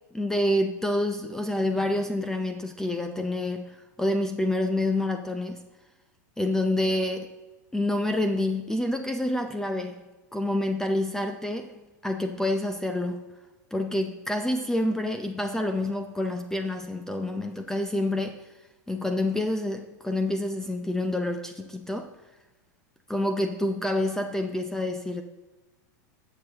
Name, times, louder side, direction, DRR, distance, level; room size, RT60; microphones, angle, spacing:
voice 1, 0.1-5.6 6.4-7.3 7.7-10.0 10.3-11.7 12.0-13.3 13.7-18.4 18.9-22.1 23.1-25.2, left 1 dB, 5° left, 0.6 m, -28 dB
18.0 x 6.9 x 2.9 m
hypercardioid pair, 120°, 10 cm